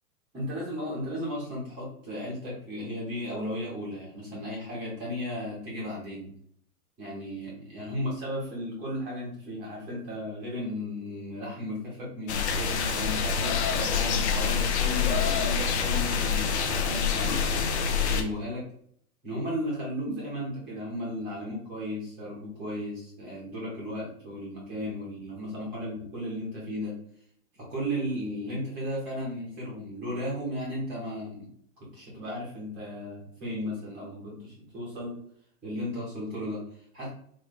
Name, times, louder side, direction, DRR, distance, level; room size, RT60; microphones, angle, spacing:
voice 1, 0.3-6.3 7.0-18.7 19.2-26.9 27.6-31.5 31.8-35.2 35.6-37.1, equal, ahead, -12 dB, 0.5 m, -35 dB
sound 1, 12.3-18.2, left 6 dB, 45° left, 0.6 m, -26 dB
4.1 x 2.1 x 4.5 m, 0.64 s
hypercardioid pair, 155°, 47 cm